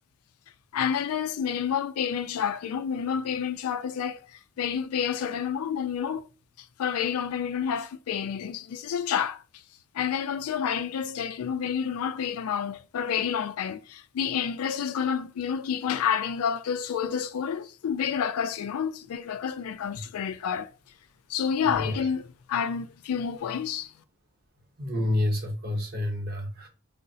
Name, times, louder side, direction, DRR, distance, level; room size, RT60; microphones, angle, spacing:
voice 1, 0.7-4.2 4.6-6.3 6.8-9.4 9.9-20.7 21.3-23.9, left 7 dB, 80° left, 0.3 m, -29 dB
voice 2, 24.8-26.7, left 1 dB, 45° right, 0.8 m, -28 dB
3.8 x 2.0 x 2.6 m
head